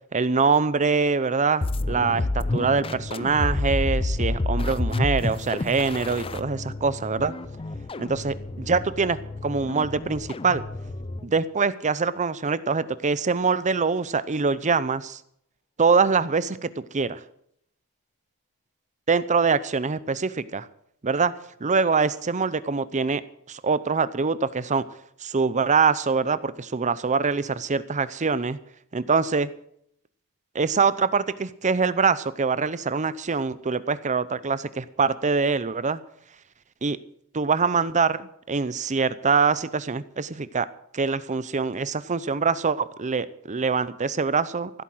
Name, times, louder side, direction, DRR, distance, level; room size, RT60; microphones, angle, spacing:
voice 1, 0.1-7.3 8.0-10.6 11.2-15.2 15.8-17.2 19.1-20.7 21.0-21.3 21.6-23.2 23.5-24.8 25.2-28.6 28.9-29.5 30.5-36.0 36.8-37.0 37.3-40.7 40.9-44.8, right 5 dB, 35° right, 16 dB, 0.7 m, -24 dB
sound 1, 1.6-11.3, left 2 dB, 25° left, 0.5 m, -29 dB
15.0 x 8.5 x 7.8 m, 0.70 s
head